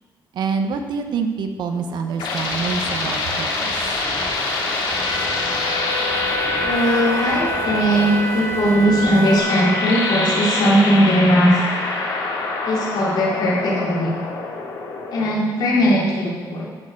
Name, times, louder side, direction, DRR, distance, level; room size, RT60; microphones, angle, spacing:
voice 1, 0.3-3.7, right 5 dB, 70° right, 6 dB, 1.2 m, -26 dB
sound 1, 1.7-15.3, left 3 dB, 90° left, 2.8 m, -26 dB
sound 2, 2.2-9.4, right 1 dB, 30° right, 4.2 m, -36 dB
Wind instrument woodwind instrument, 4.9-10.7, equal, 35° left, 1.9 m, -27 dB
voice 2, 6.6-11.5 12.6-14.1 15.1-16.6, equal, 65° left, -4 dB, 3.9 m, -19 dB
11.0 x 7.8 x 7.1 m, 1.4 s
cardioid pair, 125°, 8 cm